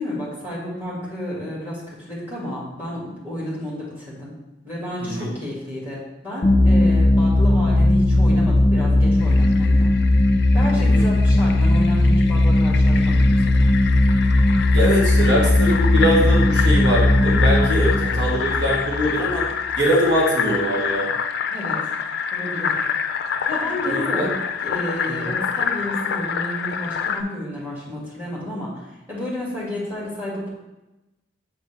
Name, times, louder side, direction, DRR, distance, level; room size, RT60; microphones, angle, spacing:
voice 1, 0.0-4.3 4.6-9.9 10.5-13.7 21.5-21.8 22.3-22.8 23.5-30.5, left 1 dB, 10° right, -7 dB, 2.2 m, -31 dB
sound 1, 6.4-19.7, left 1 dB, 25° left, 1.0 m, -17 dB
Fill (with liquid), 9.2-27.2, left 6 dB, 60° left, 0.4 m, -28 dB
voice 2, 10.7-11.1 14.7-19.4 19.8-21.1 23.8-24.3 25.1-25.3, equal, 70° right, -4 dB, 1.4 m, -22 dB
7.4 x 4.1 x 3.4 m, 1.0 s
head